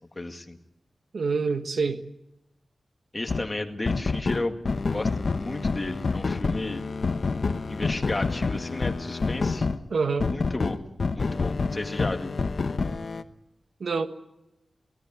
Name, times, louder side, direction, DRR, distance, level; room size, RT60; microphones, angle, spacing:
voice 1, 0.2-0.6 3.1-6.8 7.7-9.7 10.3-10.8 11.1-12.3, left 2 dB, 25° left, 5 dB, 2.1 m, -33 dB
voice 2, 1.1-2.0 9.9-10.3 13.8-14.1, right 4 dB, 70° right, 9 dB, 1.4 m, -26 dB
sound 1, 3.3-3.5 3.9-9.8 10.2-13.2, left 4 dB, 55° left, 1.1 m, -28 dB
22.5 x 17.5 x 9.4 m, 0.91 s
wide cardioid pair, 95°, 0 cm